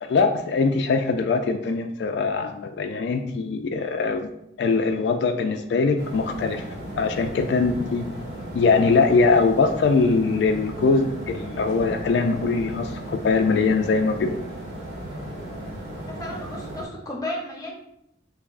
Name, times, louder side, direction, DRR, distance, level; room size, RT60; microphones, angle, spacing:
voice 1, 0.0-4.3 4.6-6.6 7.0-8.1 8.5-14.4, left 4 dB, 75° left, 6 dB, 0.3 m, -22 dB
sound 1, 6.0-16.8, right 1 dB, 70° right, 1.2 m, -35 dB
voice 2, 16.1-17.7, left 1 dB, 20° left, -1 dB, 0.6 m, -33 dB
5.6 x 2.0 x 2.5 m, 0.79 s
head